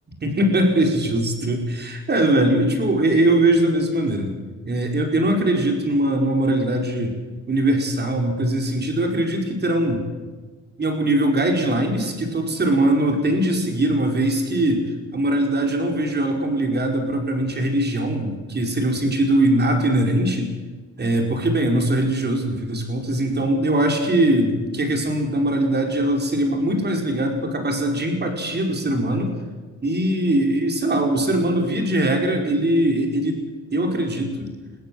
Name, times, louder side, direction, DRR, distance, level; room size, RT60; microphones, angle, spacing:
voice 1, 0.2-4.3 4.6-7.1 7.5-10.0 10.8-20.5 21.0-29.3 29.8-33.4 33.7-34.5, right 1 dB, 35° right, 3 dB, 5.1 m, -21 dB
22.0 x 16.0 x 7.9 m, 1.3 s
cardioid pair, 90°, 30 cm